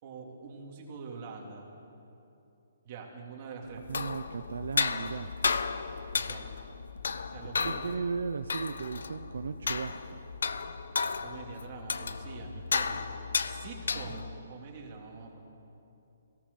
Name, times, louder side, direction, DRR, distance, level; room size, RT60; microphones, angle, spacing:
voice 1, 0.0-1.6 2.8-3.8 6.1-6.5 7.3-7.9 11.2-13.0 13.4-15.4, right 4 dB, 25° right, -1 dB, 3.0 m, -44 dB
sound 1, 3.7-14.4, left 5 dB, 80° left, 1.0 m, -34 dB
voice 2, 3.9-5.3 7.4-10.2, right 5 dB, 70° right, 10 dB, 0.7 m, -36 dB
23.0 x 17.5 x 7.1 m, 2.7 s
hypercardioid pair, 175°, 0 cm